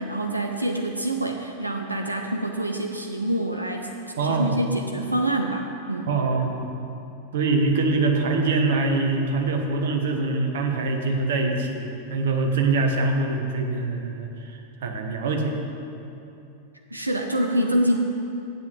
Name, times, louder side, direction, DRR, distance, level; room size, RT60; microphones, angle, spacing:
voice 1, 0.0-3.9 4.2-6.1 16.9-18.0, right 1 dB, 85° right, 3 dB, 0.6 m, -26 dB
voice 2, 4.2-4.6 6.1-6.7 7.3-15.6, right 3 dB, 60° right, 3 dB, 1.2 m, -24 dB
8.1 x 7.4 x 7.8 m, 2.8 s
figure-of-eight pair, 90°, 0 cm